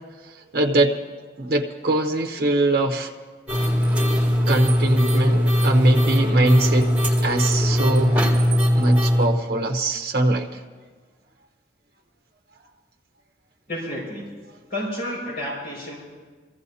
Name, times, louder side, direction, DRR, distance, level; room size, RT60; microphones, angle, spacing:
voice 1, 0.5-1.0 1.4-3.1 4.5-6.9 7.2-8.2 8.7-10.5, right 2 dB, 55° right, 2 dB, 0.8 m, -21 dB
sound 1, 3.5-9.3, equal, 10° right, 1.8 m, -20 dB
voice 2, 13.7-14.4 14.7-16.0, left 1 dB, 60° left, -7 dB, 5.5 m, -30 dB
23.0 x 15.5 x 2.8 m, 1.5 s
head